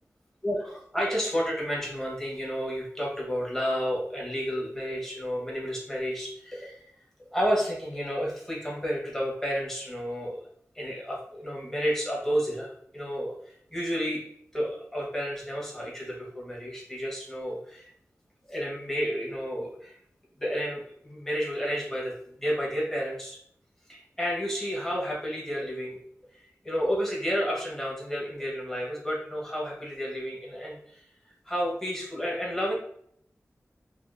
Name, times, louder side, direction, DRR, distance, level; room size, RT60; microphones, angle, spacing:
voice 1, 0.4-6.9 7.2-10.4 10.7-13.3 13.7-14.3 14.5-17.9 18.5-20.0 20.4-23.4 23.9-26.0 26.4-31.0 31.4-32.7, equal, 10° left, -4 dB, 1.1 m, -31 dB
3.4 x 2.6 x 2.6 m, 0.66 s
wide cardioid pair, 90°, 5 cm